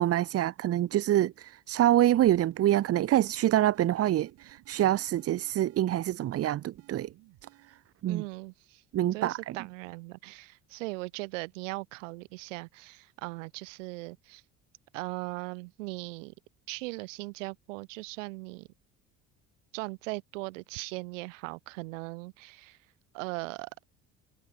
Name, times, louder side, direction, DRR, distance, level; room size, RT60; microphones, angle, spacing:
voice 1, 0.0-7.1 8.0-8.2 8.9-9.6, right 13 dB, 40° right, 0.6 m, -26 dB
sound 1, 2.1-7.9, right 20 dB, 70° right, 5.0 m, -58 dB
voice 2, 8.1-8.8 9.1-14.4 14.9-16.3 16.7-18.7 19.7-22.8 23.1-23.7, right 24 dB, 90° right, 0.5 m, -39 dB
hypercardioid pair, 70°, 36 cm